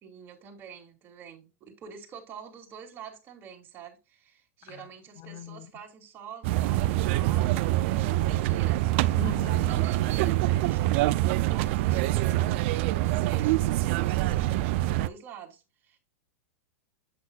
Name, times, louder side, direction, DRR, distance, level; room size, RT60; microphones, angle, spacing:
voice 1, 0.0-8.8 9.6-16.0, right 7 dB, 30° right, 2.9 m, -46 dB
voice 2, 5.2-5.7 9.1-9.8, left 11 dB, 45° left, 0.8 m, -40 dB
sound 1, 6.4-15.1, right 16 dB, 55° right, 0.5 m, -25 dB
8.4 x 7.8 x 2.4 m
hypercardioid pair, 125°, 8 cm